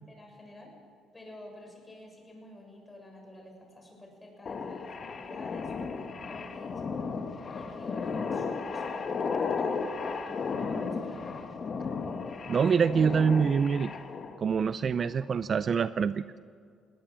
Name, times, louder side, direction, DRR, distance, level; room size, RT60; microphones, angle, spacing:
voice 1, 0.1-0.7 1.1-4.9 5.2-6.8 7.5-11.4 15.0-15.1, left 1 dB, 20° left, 1 dB, 6.9 m, -49 dB
sound 1, 4.5-14.4, left 5 dB, 40° left, 1.6 m, -34 dB
voice 2, 12.5-13.9 14.4-16.2, right 6 dB, 40° right, 14 dB, 0.5 m, -25 dB
20.0 x 18.5 x 7.6 m, 2.2 s
cardioid pair, 105°, 0 cm